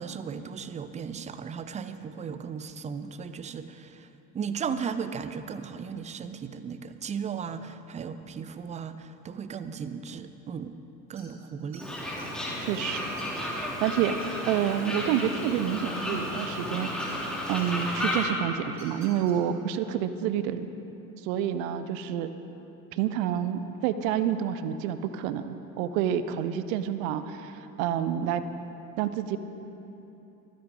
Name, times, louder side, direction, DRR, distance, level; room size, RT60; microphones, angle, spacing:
voice 1, 0.0-4.1 4.3-10.8 11.1-11.9, right 6 dB, 15° right, 12 dB, 0.5 m, -36 dB
sound 1, 11.2-11.4 11.7-12.3 12.9-13.5 13.9-14.0 14.2-14.3 14.6-15.8 17.0-17.6 18.0-18.1 18.7-19.3, right 4 dB, 35° right, 3.3 m, -51 dB
Fowl, 11.8-18.2, left 1 dB, ahead, 2.8 m, -33 dB
voice 2, 12.6-13.0 13.8-14.2 14.5-16.9 17.5-20.7 21.2-22.3 22.9-28.4 29.0-29.4, right 10 dB, 55° right, 12 dB, 0.9 m, -28 dB
24.0 x 10.0 x 3.8 m, 3.0 s
figure-of-eight pair, 65°, 48 cm